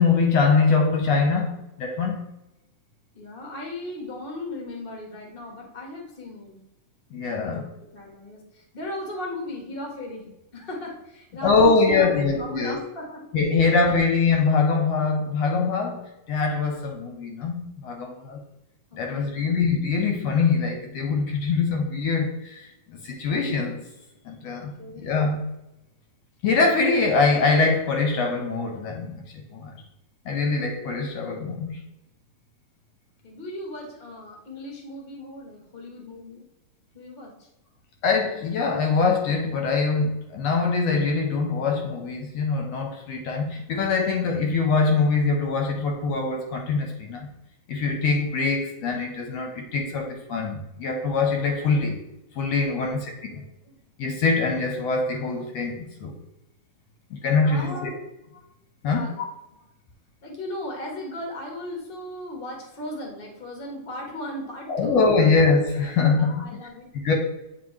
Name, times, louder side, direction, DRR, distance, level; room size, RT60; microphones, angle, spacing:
voice 1, 0.0-2.2 7.1-7.6 11.4-12.8 13.3-18.4 19.0-23.8 24.3-25.4 26.4-29.7 30.3-31.8 38.0-47.3 47.7-52.0 52.4-53.1 54.0-56.2 57.1-57.9 58.8-59.1 64.7-66.4 67.0-67.1, left 4 dB, 75° left, 1.7 m, -23 dB
voice 2, 3.1-6.6 7.3-13.3 13.7-14.0 18.9-19.5 24.8-25.1 33.2-36.5 36.9-37.5 52.7-53.8 57.4-58.0 58.8-59.2 60.2-65.0 66.1-66.9, left 1 dB, 40° left, 0.7 m, -37 dB
8.5 x 3.8 x 3.1 m
omnidirectional pair, 3.4 m